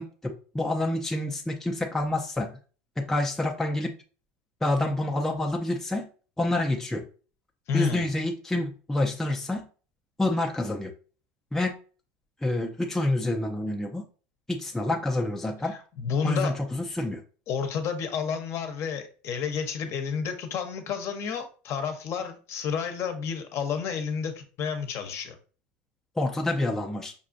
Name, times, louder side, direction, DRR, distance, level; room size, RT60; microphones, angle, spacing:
voice 1, 0.0-2.5 3.0-3.9 4.6-6.1 6.4-7.1 7.7-9.7 10.2-10.9 11.5-11.8 12.4-14.1 14.5-15.8 16.2-17.2 26.2-27.1, left 1 dB, 5° left, 0.5 m, -28 dB
voice 2, 7.7-8.1 15.6-16.5 17.5-25.4, left 6 dB, 45° left, 0.8 m, -30 dB
5.2 x 2.4 x 2.5 m
supercardioid pair, 105°, 6 cm